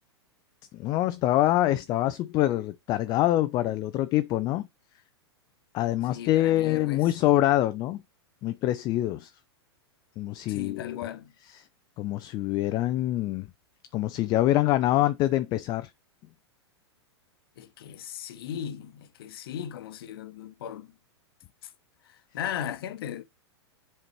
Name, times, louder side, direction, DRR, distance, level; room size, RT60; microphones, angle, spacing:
voice 1, 0.7-4.7 5.7-8.0 8.4-9.3 10.2-11.0 12.0-13.5 13.9-15.9, left 14 dB, 30° left, 0.4 m, -25 dB
voice 2, 6.1-7.3 10.5-11.3 14.1-14.3 17.6-20.9 21.6-21.7 22.1-23.2, left 10 dB, 55° left, 0.9 m, -37 dB
7.5 x 4.5 x 2.9 m
figure-of-eight pair, 100°, 14 cm